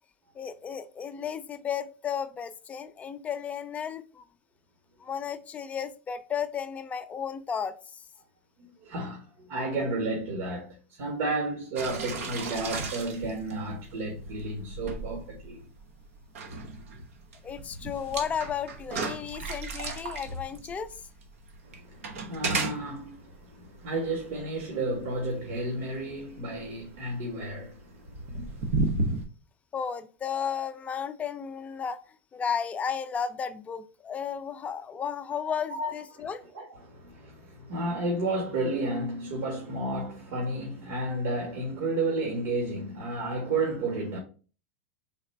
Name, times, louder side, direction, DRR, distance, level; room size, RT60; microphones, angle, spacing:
voice 1, 0.4-4.2 5.0-8.0 17.4-20.9 29.7-32.0 32.3-36.4, left 7 dB, 20° left, 0.4 m, -33 dB
voice 2, 8.6-15.6 17.8-17.9 21.6-28.6 35.4-36.3 36.5-44.2, right 2 dB, 60° right, 1.5 m, -32 dB
sound 1, 11.8-29.2, right 3 dB, 80° right, 1.0 m, -35 dB
4.0 x 2.5 x 4.4 m
supercardioid pair, 125°, 7 cm